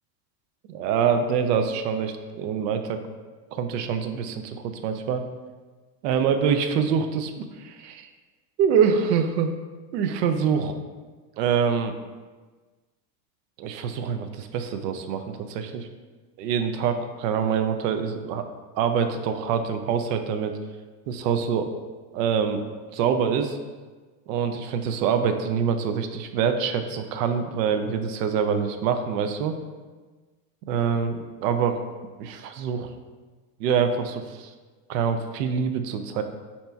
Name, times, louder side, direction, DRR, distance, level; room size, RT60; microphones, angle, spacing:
voice 1, 0.7-3.0 3.5-5.2 6.0-8.1 8.6-9.5 9.9-10.7 11.4-11.9 13.6-15.9 16.4-18.5 18.8-20.5 21.1-21.7 22.1-22.6 22.9-23.6 24.3-29.6 30.7-31.8 32.2-32.9 33.6-34.5 34.9-36.2, right 7 dB, 75° right, 7 dB, 0.6 m, -25 dB
3.4 x 2.9 x 4.4 m, 1.3 s
supercardioid pair, 140°, 49 cm